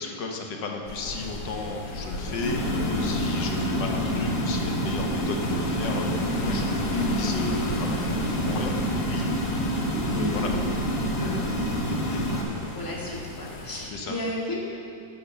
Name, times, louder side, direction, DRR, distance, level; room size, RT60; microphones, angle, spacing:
voice 1, 0.0-9.6 10.0-10.5 12.1-12.3 13.9-14.1, left 3 dB, 85° left, 2 dB, 1.7 m, -34 dB
sound 1, 0.9-13.9, left 2 dB, 70° left, 1.6 m, -38 dB
sound 2, 1.2-13.2, equal, 25° right, 2.6 m, -46 dB
sound 3, 2.4-12.4, equal, 40° left, 1.3 m, -27 dB
voice 2, 6.9-7.3 10.1-10.7 11.1-11.4 12.1-14.6, left 1 dB, 10° left, -4 dB, 1.9 m, -33 dB
11.0 x 8.2 x 6.9 m, 2.6 s
omnidirectional pair, 1.9 m